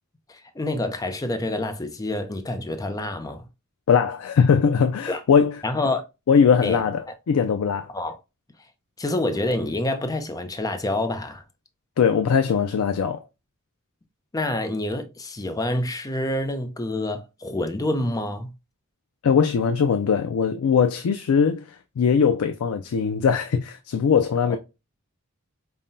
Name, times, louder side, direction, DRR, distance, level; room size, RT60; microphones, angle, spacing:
voice 1, 0.3-3.5 5.1-5.2 5.6-6.0 6.6-6.8 7.9-8.2 9.0-11.4 14.3-18.5 24.5-24.6, left 1 dB, 15° left, 0.4 m, -27 dB
voice 2, 3.9-5.6 6.3-7.9 12.0-13.3 19.2-24.6, left 6 dB, 85° left, 0.4 m, -20 dB
5.4 x 2.1 x 2.6 m
head